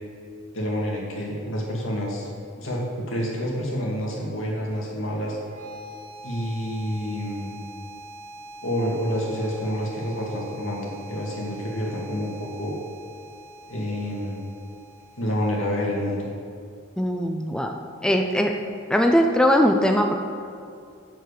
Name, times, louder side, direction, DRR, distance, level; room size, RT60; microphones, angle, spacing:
voice 1, 0.5-2.3 2.6-5.4 6.2-7.6 8.6-12.8 13.7-14.5 15.2-16.3, equal, 80° left, -3 dB, 2.3 m, -28 dB
sound 1, 5.3-16.3, right 1 dB, 35° right, 1.9 m, -44 dB
voice 2, 17.0-18.6 18.9-20.1, equal, 5° left, 3 dB, 0.4 m, -20 dB
7.8 x 7.6 x 6.7 m, 2.4 s
head